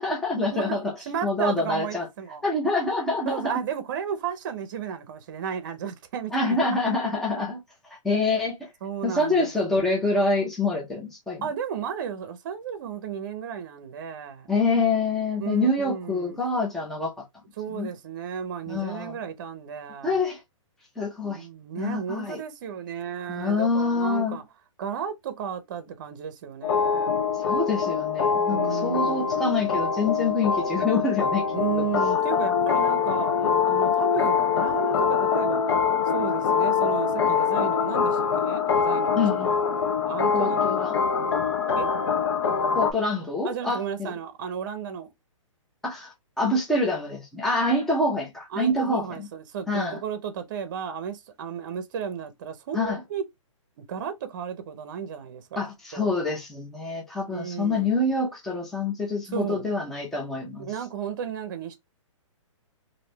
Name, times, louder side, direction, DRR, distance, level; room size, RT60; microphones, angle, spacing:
voice 1, 0.0-0.9 1.2-2.1 2.4-3.5 6.3-7.6 8.0-8.7 9.0-11.4 14.5-17.1 17.7-17.9 18.7-19.2 20.0-20.4 21.0-21.5 21.7-22.4 23.3-24.4 27.4-31.5 31.8-31.9 39.2-39.5 40.3-41.0 42.7-44.1 45.8-49.3 49.7-50.0 52.7-53.0 55.6-60.7, left 2 dB, ahead, 0.6 m, -26 dB
voice 2, 1.0-2.4 3.3-6.6 8.8-9.5 11.4-14.5 15.4-16.4 17.6-20.2 21.2-24.4 24.8-27.2 28.5-29.4 31.5-35.6 36.1-39.5 40.1-41.0 41.7-41.9 43.4-45.1 48.5-53.2 53.8-55.6 55.9-56.1 57.3-58.0 59.3-59.7 60.6-61.8, right 8 dB, 40° right, 0.7 m, -33 dB
sound 1, 26.6-42.9, left 6 dB, 55° left, 0.7 m, -24 dB
3.1 x 2.7 x 3.1 m
hypercardioid pair, 160°, 17 cm